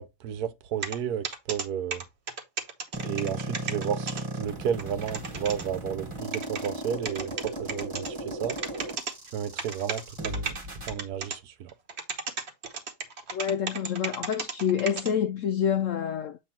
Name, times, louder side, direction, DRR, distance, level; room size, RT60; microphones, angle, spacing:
voice 1, 0.0-2.0 2.9-8.6 9.3-11.7, right 9 dB, 70° right, 1.2 m, -33 dB
sound 1, 0.8-1.0 1.2-1.6 1.9-4.2 4.5-4.6 4.8-5.6 6.3-6.7 7.0-8.1 8.5-9.1 9.6-10.6 10.9-11.4 11.7-15.1, right 5 dB, 45° right, 1.1 m, -33 dB
sound 2, 2.9-10.9, right 1 dB, 20° right, 1.2 m, -36 dB
voice 2, 13.3-16.4, left 8 dB, 75° left, 0.7 m, -27 dB
7.6 x 3.1 x 4.2 m
omnidirectional pair, 1.8 m